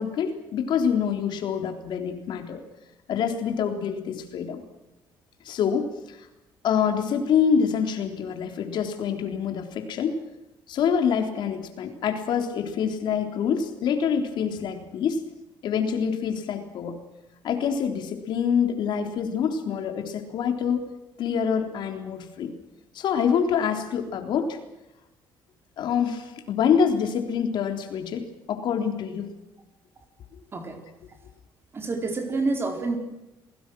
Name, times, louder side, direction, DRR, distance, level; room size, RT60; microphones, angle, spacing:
voice 1, 0.0-2.6 3.1-4.6 5.4-6.3 6.6-10.2 10.7-15.2 15.6-17.0 17.4-20.9 21.2-22.5 22.9-24.6 25.8-28.2 28.5-29.3, left 7 dB, 60° left, 6 dB, 3.7 m, -26 dB
voice 2, 31.7-33.0, right 3 dB, 25° right, 5 dB, 4.3 m, -28 dB
29.0 x 19.5 x 6.2 m, 0.98 s
cardioid pair, 145°, 9 cm